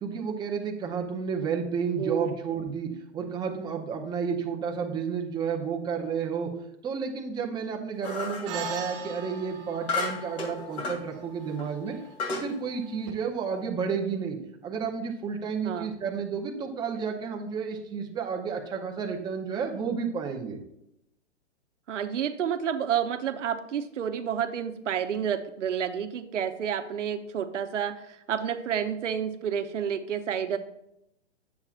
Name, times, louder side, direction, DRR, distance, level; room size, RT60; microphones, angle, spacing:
voice 1, 0.0-6.5 6.8-12.0 12.3-14.4 14.6-20.6, right 6 dB, 10° right, 2 dB, 0.7 m, -31 dB
voice 2, 2.0-2.4 15.6-15.9 21.9-30.6, right 8 dB, 80° right, 8 dB, 0.9 m, -30 dB
sound 1, 8.0-8.5 9.9-11.0 11.6-11.7 12.2-12.5, left 3 dB, 60° left, 2.5 m, -32 dB
sound 2, 8.5-13.1, right 3 dB, 35° right, 1.3 m, -41 dB
9.5 x 7.2 x 2.5 m, 0.82 s
hypercardioid pair, 135°, 36 cm